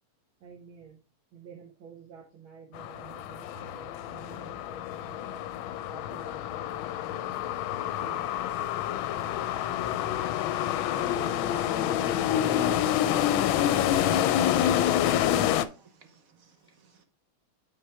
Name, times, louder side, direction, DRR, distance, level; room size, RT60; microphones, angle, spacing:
voice 1, 0.4-1.0 1.3-5.4 5.9-7.3 8.0-8.4, right 7 dB, 70° right, 1 dB, 1.8 m, -50 dB
sound 1, 2.7-15.6, left 11 dB, 75° left, 1.3 m, -27 dB
voice 2, 10.9-12.8, left 3 dB, ahead, -1 dB, 2.1 m, -41 dB
voice 3, 15.6-17.0, right 5 dB, 55° right, 7 dB, 1.1 m, -60 dB
7.1 x 5.5 x 3.3 m, 0.32 s
omnidirectional pair, 2.4 m